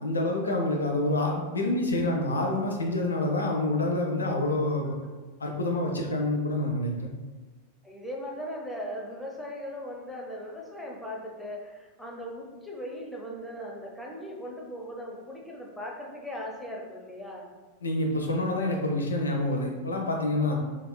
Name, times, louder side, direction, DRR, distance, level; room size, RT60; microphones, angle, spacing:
voice 1, 0.0-4.9 5.4-7.1 17.8-20.5, left 1 dB, 75° left, 1 dB, 0.5 m, -27 dB
voice 2, 7.8-17.5, equal, 5° left, -2 dB, 0.5 m, -38 dB
3.5 x 2.4 x 2.2 m, 1.3 s
figure-of-eight pair, 90°, 0 cm